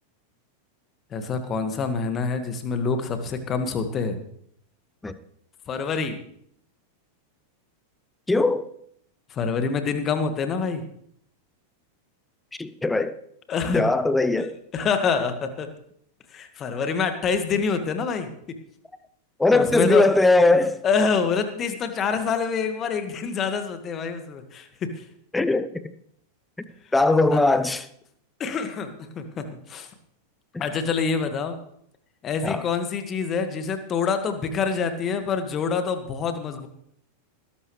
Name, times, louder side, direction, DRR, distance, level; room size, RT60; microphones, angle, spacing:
voice 1, 1.1-4.2 5.7-6.2 9.3-10.8 13.5-13.8 14.4-14.5 14.7-15.7 16.3-18.3 19.5-20.1 20.8-25.0 27.3-27.4 28.4-29.9 30.6-31.6 32.2-36.7, left 5 dB, 25° left, 8 dB, 1.8 m, -26 dB
voice 2, 8.3-8.7 12.6-13.1 13.7-14.5 19.4-20.8 25.3-25.8 26.9-27.8 30.5-30.6 32.4-32.6, left 2 dB, 10° left, 13 dB, 0.8 m, -20 dB
19.5 x 11.5 x 3.3 m, 0.68 s
figure-of-eight pair, 90°, 0 cm